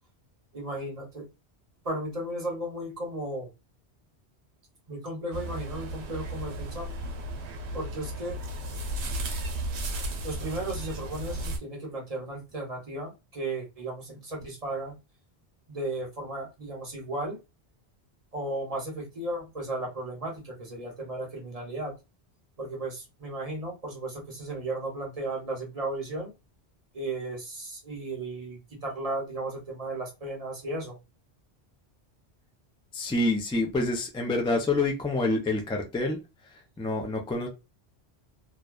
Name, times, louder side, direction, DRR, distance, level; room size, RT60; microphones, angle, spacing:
voice 1, 0.5-1.3 1.8-3.5 4.9-6.9 7.7-8.4 10.2-15.0 15.7-17.4 18.3-21.9 22.6-26.3 26.9-31.0, right 2 dB, 35° right, 1.1 m, -35 dB
sound 1, 5.3-11.6, right 1 dB, 90° right, 0.9 m, -34 dB
voice 2, 32.9-36.2 36.8-37.5, left 2 dB, 10° left, 0.3 m, -27 dB
2.6 x 2.1 x 2.2 m
omnidirectional pair, 1.1 m